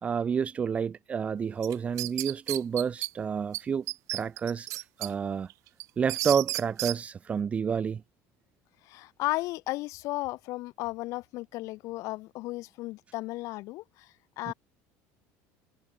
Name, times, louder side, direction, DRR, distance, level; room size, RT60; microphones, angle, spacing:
voice 1, 0.0-3.8 4.1-5.5 6.0-8.0 14.5-14.6, right 7 dB, 20° right, 0.8 m, -29 dB
sound 1, 1.6-3.1 3.5-3.6 3.9-5.1 5.5-7.0, right 18 dB, 45° right, 7.6 m, -33 dB
voice 2, 8.9-13.8 14.4-14.5, left 19 dB, 50° left, 4.7 m, -34 dB
cardioid pair, 180°, 7 cm